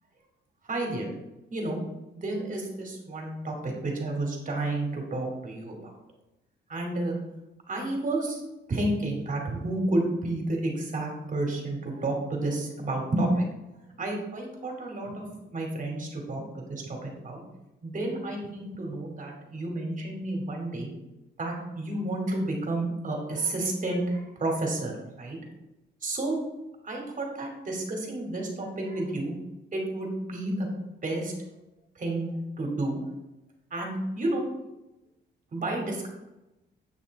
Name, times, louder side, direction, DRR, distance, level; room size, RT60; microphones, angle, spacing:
voice 1, 0.7-1.1 1.5-1.8 2.2-5.9 6.7-7.1 7.7-8.4 8.7-13.4 13.9-15.2 15.5-17.4 17.8-20.9 21.4-24.9 25.2-25.4 26.0-26.4 26.8-29.3 29.7-30.7 31.0-31.3 32.0-32.3 32.6-33.0 33.7-34.4 35.5-36.1, right 2 dB, 45° right, 1 dB, 2.5 m, -30 dB
8.9 x 5.9 x 4.1 m, 0.96 s
cardioid pair, 95°, 19 cm